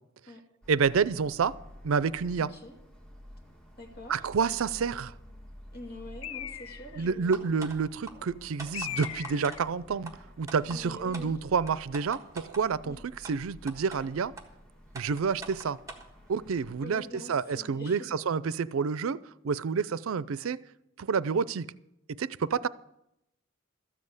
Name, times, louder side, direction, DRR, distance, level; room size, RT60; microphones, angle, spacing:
sound 1, 0.6-16.7, equal, 5° left, 1.7 m, -52 dB
voice 1, 0.7-1.6 1.8-2.5 4.1-5.1 7.0-10.1 10.4-14.3 14.9-15.8 16.3-19.2 19.4-20.6 21.0-21.7 22.1-22.7, right 5 dB, 75° right, 0.4 m, -29 dB
voice 2, 2.4-2.8 3.8-4.2 5.7-7.5 10.6-11.4 12.8-13.0 16.8-18.1, left 1 dB, 50° left, 2.5 m, -45 dB
Bird, 6.2-7.1 8.7-9.7, left 10 dB, 75° left, 0.5 m, -38 dB
sound 2, 7.3-7.8 8.1-8.2 8.6-9.6 10.0-10.1 10.5-10.8 11.1-11.3 11.7-12.6 13.2-13.3 13.7-14.0 14.4-14.5 14.9-16.1, right 3 dB, 15° right, 1.5 m, -42 dB
13.5 x 7.6 x 7.9 m
head